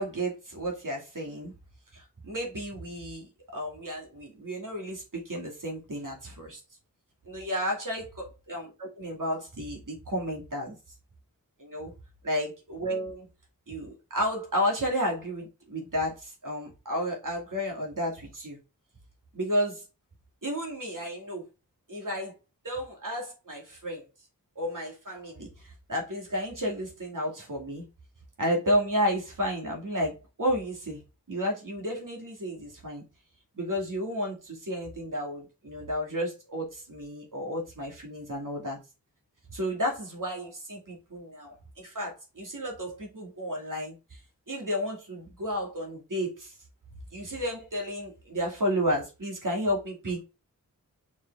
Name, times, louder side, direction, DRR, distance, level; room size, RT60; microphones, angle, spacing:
voice 1, 0.0-1.5 1.9-6.6 7.3-8.1 8.5-10.7 11.6-11.9 12.2-13.3 13.7-18.6 19.3-19.8 20.4-21.4 21.9-22.3 22.6-24.1 24.6-27.9 28.4-31.0 31.3-33.0 33.6-38.8 39.5-44.2 44.5-46.5 47.1-50.2, equal, 65° right, 2.3 m, -32 dB
6.0 x 5.0 x 3.4 m
wide cardioid pair, 75°, 34 cm